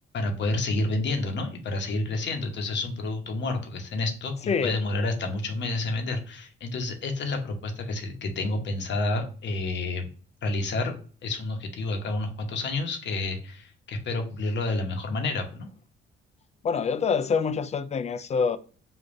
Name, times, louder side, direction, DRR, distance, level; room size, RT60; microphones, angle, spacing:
voice 1, 0.1-10.1 10.4-10.9 11.2-15.7, left 2 dB, 65° left, 0.9 m, -29 dB
voice 2, 4.5-4.8 16.6-18.6, left 5 dB, 35° left, 0.4 m, -26 dB
5.2 x 2.4 x 2.5 m
cardioid pair, 90°, 20 cm